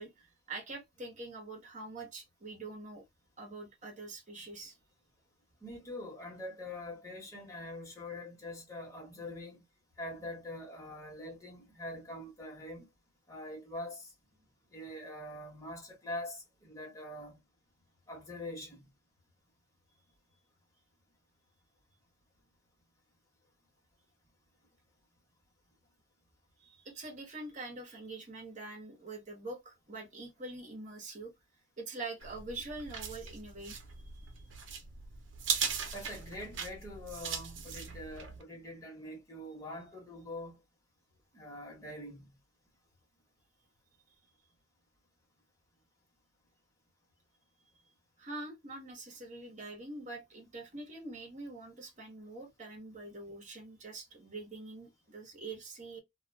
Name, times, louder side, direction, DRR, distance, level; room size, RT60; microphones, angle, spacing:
voice 1, 0.0-3.0 3.4-4.7 26.6-31.3 31.8-33.8 48.2-56.0, right 2 dB, 40° right, 1.1 m, -44 dB
voice 2, 5.6-9.6 10.0-12.9 13.3-14.1 14.7-17.4 18.1-18.8 35.9-40.6 41.3-42.3, left 1 dB, 20° left, 1.3 m, -44 dB
sound 1, 32.2-38.4, right 6 dB, 75° right, 0.7 m, -39 dB
2.4 x 2.3 x 3.2 m
head